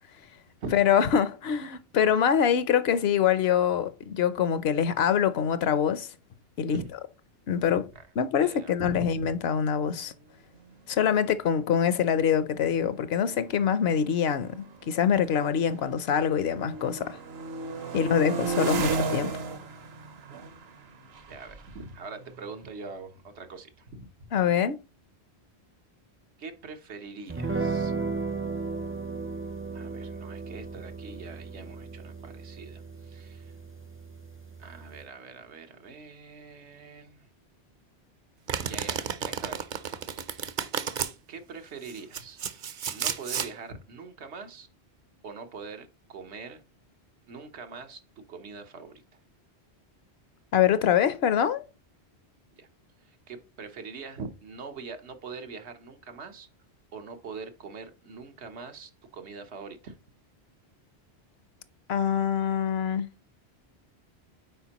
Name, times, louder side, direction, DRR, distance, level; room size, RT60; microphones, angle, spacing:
voice 1, 0.7-6.1 6.6-6.8 7.5-7.9 8.2-10.1 10.9-17.2 17.9-19.3 24.3-24.8 50.5-51.6 61.9-63.1, left 8 dB, 70° left, 0.9 m, -24 dB
voice 2, 8.4-9.3 17.9-18.0 21.3-24.3 26.4-27.9 29.7-33.5 34.6-37.3 38.6-39.7 40.2-40.5 41.3-42.4 42.9-44.7 45.2-46.6 47.3-49.0 52.6-52.7 53.1-56.5 56.9-60.0, right 4 dB, 90° right, 1.3 m, -43 dB
sound 1, 10.7-10.8 11.1-11.4 12.2-16.1 16.4-23.1, right 4 dB, 70° right, 1.1 m, -36 dB
sound 2, 27.3-35.1, right 4 dB, 20° right, 0.4 m, -35 dB
Domestic sounds home sounds, 38.5-41.1 41.9-43.5, right 7 dB, 55° right, 0.7 m, -32 dB
9.1 x 4.4 x 2.9 m
omnidirectional pair, 1.1 m